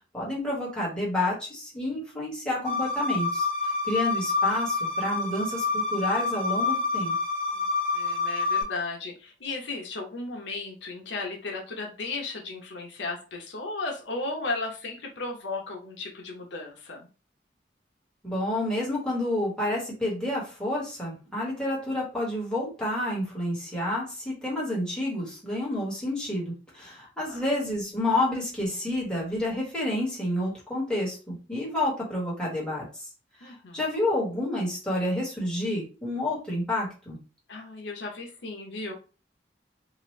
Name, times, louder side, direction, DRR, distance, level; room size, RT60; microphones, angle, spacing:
voice 1, 0.1-7.1 18.2-33.1 33.4-37.2, left 1 dB, 5° left, -5 dB, 1.4 m, -29 dB
sound 1, 2.6-8.6, left 3 dB, 50° right, 1.5 m, -27 dB
voice 2, 7.9-17.1 27.2-27.4 33.4-33.8 37.5-38.9, left 3 dB, 80° left, 1 dB, 0.8 m, -35 dB
2.9 x 2.5 x 3.1 m, 0.35 s
head